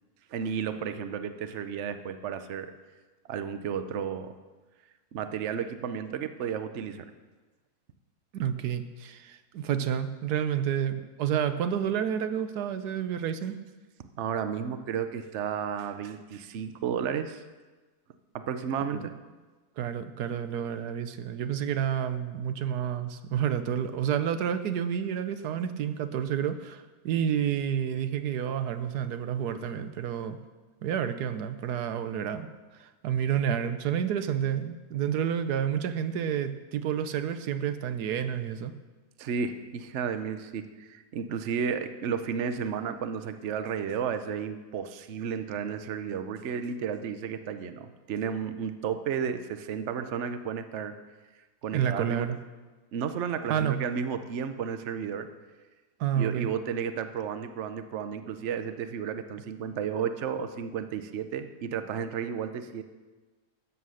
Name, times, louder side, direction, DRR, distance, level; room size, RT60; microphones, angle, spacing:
voice 1, 0.3-2.7 3.3-4.3 5.1-7.1 14.2-17.4 18.3-19.1 39.2-50.9 51.6-52.3 52.9-55.3 56.1-62.8, right 7 dB, 55° right, 9 dB, 1.0 m, -33 dB
voice 2, 8.3-13.6 18.9-19.1 19.8-30.4 30.8-32.5 32.8-38.7 51.7-52.4 53.5-53.8 56.0-56.5, right 9 dB, 85° right, 10 dB, 1.3 m, -29 dB
13.0 x 8.4 x 6.4 m, 1.3 s
omnidirectional pair, 1.6 m